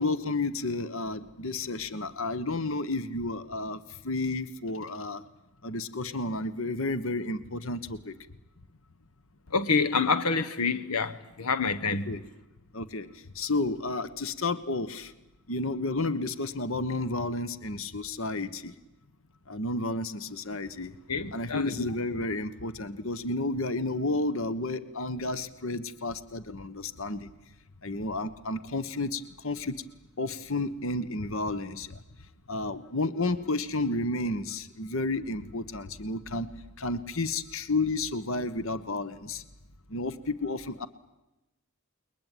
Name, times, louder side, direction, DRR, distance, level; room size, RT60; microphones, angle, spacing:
voice 1, 0.0-5.2 5.6-8.1 11.8-12.2 12.7-13.1 13.3-15.1 15.5-18.7 19.5-20.9 21.3-27.3 27.8-29.7 30.2-32.0 32.5-36.5 36.8-39.4 39.9-40.9, left 2 dB, 60° left, 1.3 m, -31 dB
voice 2, 9.5-12.1 21.1-21.9, left 4 dB, 90° left, 1.3 m, -27 dB
29.5 x 22.0 x 9.3 m
head